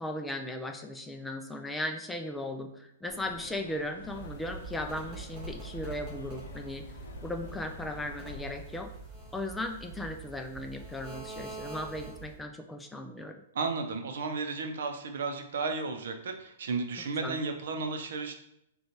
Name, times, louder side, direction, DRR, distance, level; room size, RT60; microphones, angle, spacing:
voice 1, 0.0-6.9 7.2-8.9 9.3-13.4 17.2-17.4, left 1 dB, 5° left, 5 dB, 0.4 m, -37 dB
sound 1, 3.1-8.6, left 3 dB, 80° left, 0.5 m, -47 dB
sound 2, 4.0-12.4, right 4 dB, 20° right, 1.5 m, -45 dB
voice 2, 13.5-18.3, right 4 dB, 70° right, 5 dB, 0.6 m, -33 dB
5.1 x 2.4 x 2.9 m, 0.79 s
hypercardioid pair, 130°, 0 cm